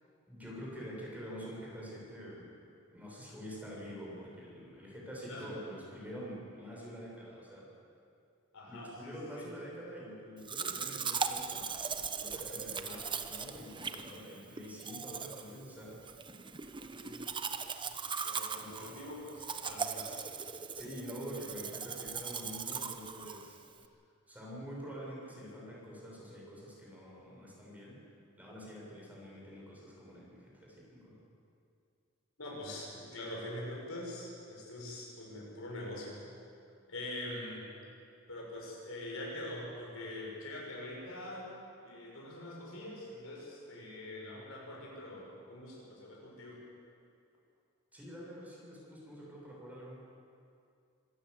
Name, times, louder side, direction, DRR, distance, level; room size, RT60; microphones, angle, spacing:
voice 1, 0.3-2.6 2.9-7.7 8.7-11.7 12.2-16.0 18.6-18.7 20.1-20.2 20.7-23.6 24.3-28.0 28.4-31.2 47.9-50.0, equal, 10° right, -4 dB, 6.3 m, -46 dB
voice 2, 8.5-9.5 12.8-13.0 17.0-17.4 18.2-20.1 32.4-36.2 36.9-37.7 38.3-41.5 41.8-46.6, left 1 dB, 70° left, -3 dB, 6.9 m, -44 dB
Domestic sounds home sounds, 10.5-23.9, right 5 dB, 25° right, 0.9 m, -39 dB
26.0 x 14.5 x 8.2 m, 2.4 s
head